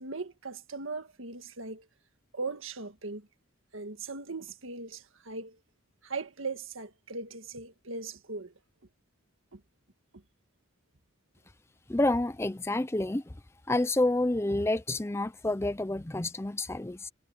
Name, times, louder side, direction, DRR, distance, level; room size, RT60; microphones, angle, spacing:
voice 1, 0.0-1.9 2.3-3.3 3.7-5.6 6.0-8.5 9.5-9.6 10.1-10.2, right 3 dB, 80° right, 1.8 m, -39 dB
voice 2, 11.9-13.3 13.7-17.1, left 2 dB, 15° left, 0.5 m, -29 dB
head